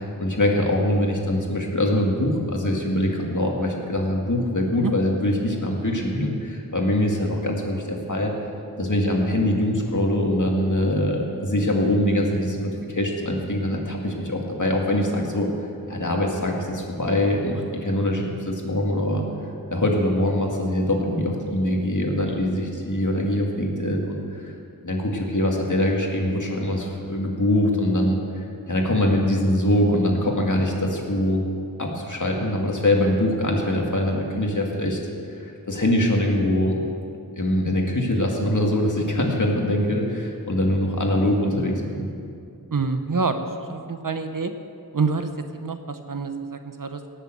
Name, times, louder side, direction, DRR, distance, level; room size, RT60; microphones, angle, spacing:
voice 1, 0.0-8.3 8.8-15.5 15.9-19.2 19.7-24.5 24.8-28.2 28.7-31.4 31.8-35.0 35.7-36.8 37.4-42.1, left 1 dB, 50° left, 0 dB, 2.3 m, -23 dB
voice 2, 42.7-44.5 44.9-47.1, right 4 dB, 55° right, 8 dB, 0.9 m, -27 dB
18.0 x 6.8 x 7.9 m, 2.5 s
wide cardioid pair, 50°, 38 cm